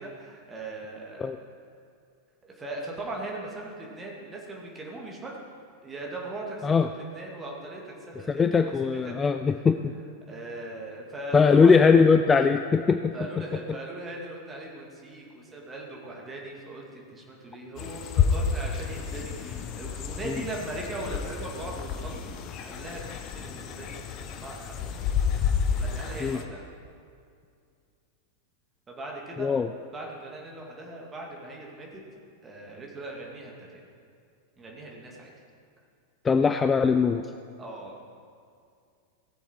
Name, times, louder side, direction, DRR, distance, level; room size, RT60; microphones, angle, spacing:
voice 1, 0.0-1.3 2.4-5.4 5.8-9.1 10.3-11.8 13.1-22.4 22.6-26.6 28.9-29.5 29.9-32.0 32.4-33.8 34.6-35.3 37.6-38.0, right 2 dB, 20° right, -1 dB, 2.3 m, -39 dB
voice 2, 8.3-9.9 11.3-13.1 20.3-20.4 26.2-26.4 29.4-29.7 36.2-37.3, left 5 dB, 20° left, 8 dB, 0.3 m, -21 dB
sound 1, 17.8-26.4, left 7 dB, 35° left, 0.8 m, -30 dB
17.0 x 7.1 x 4.6 m, 2.3 s
figure-of-eight pair, 90°, 0 cm